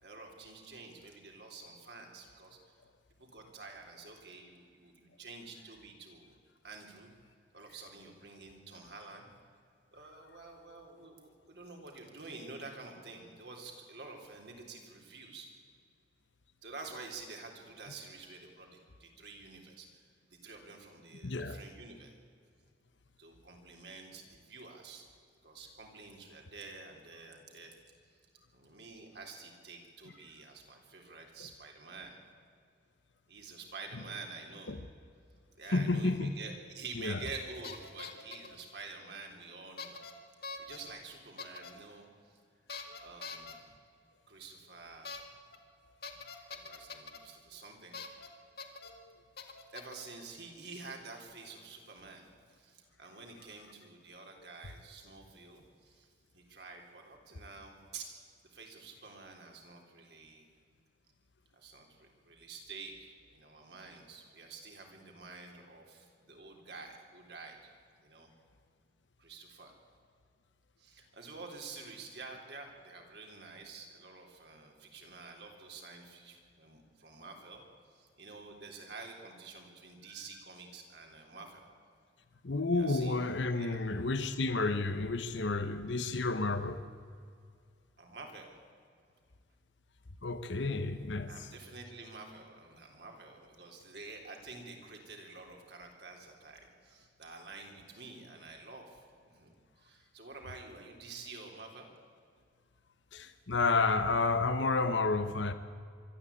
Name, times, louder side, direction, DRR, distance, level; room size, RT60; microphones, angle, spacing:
voice 1, 0.0-2.6 3.1-6.4 6.6-7.1 7.5-9.3 9.9-15.5 16.6-22.1 23.2-25.1 25.4-27.7 28.1-28.2 28.5-32.2 33.3-34.7 35.6-40.0 40.4-42.4 43.0-43.6 44.3-45.1 46.5-48.0 49.7-56.1 56.3-58.1 58.5-60.5 61.5-67.7 68.0-68.3 69.2-69.7 70.8-81.7 82.7-83.2 83.5-83.8 88.0-88.5 91.3-101.9, right 3 dB, 60° right, 3.7 m, -49 dB
voice 2, 21.2-21.6 34.7-34.8 35.7-36.3 37.0-37.2 49.0-49.1 82.4-86.8 90.2-91.3 103.1-105.5, left 3 dB, 75° left, 1.0 m, -31 dB
sound 1, 37.3-37.4 37.6-38.6 39.8-40.1 40.4-40.8 41.4-41.7 42.7-43.5 45.1-45.2 45.5-45.6 46.0-47.2 47.9-48.3 48.6-48.9 49.4-50.0, left 5 dB, 55° left, 2.0 m, -44 dB
24.0 x 12.5 x 8.5 m
head